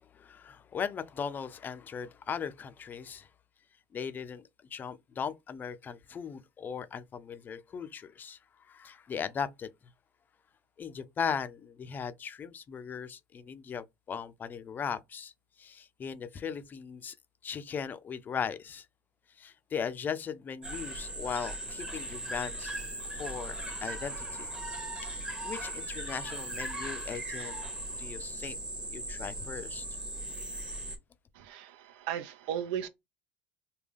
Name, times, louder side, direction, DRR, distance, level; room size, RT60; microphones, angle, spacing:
voice 1, 0.1-3.3 3.9-4.4 4.7-8.4 8.7-9.7 10.8-15.3 15.6-17.1 17.4-18.9 19.4-22.7 23.2-24.5 25.0-27.7 28.0-28.6 28.9-29.8, left 7 dB, 35° left, 0.4 m, -38 dB
sound 1, 20.6-31.0, right 1 dB, 15° right, 1.0 m, -38 dB
voice 2, 31.3-32.9, right 9 dB, 80° right, 0.6 m, -36 dB
3.5 x 2.2 x 3.4 m
supercardioid pair, 100°, 6 cm